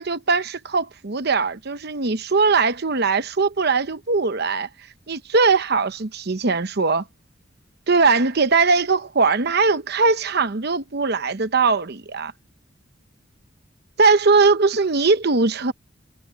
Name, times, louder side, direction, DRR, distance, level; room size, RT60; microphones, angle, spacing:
voice 1, 0.0-4.7 5.1-7.0 7.9-12.3 14.0-15.7, right 4 dB, 55° right, 0.9 m, -20 dB
head